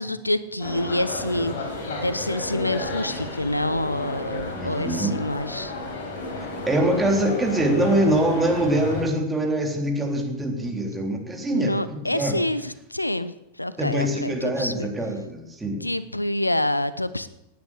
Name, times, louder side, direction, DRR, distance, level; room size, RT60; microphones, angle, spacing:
voice 1, 0.0-5.7 11.5-13.3 13.6-14.9 15.8-17.3, left 1 dB, 85° left, 16 dB, 0.7 m, -27 dB
sound 1, 0.6-9.0, left 2 dB, 55° left, 5.1 m, -32 dB
voice 2, 4.5-5.2 6.7-12.4 13.8-15.9, right 1 dB, 10° right, 1 dB, 3.6 m, -24 dB
18.0 x 9.5 x 8.3 m, 0.86 s
figure-of-eight pair, 90°, 0 cm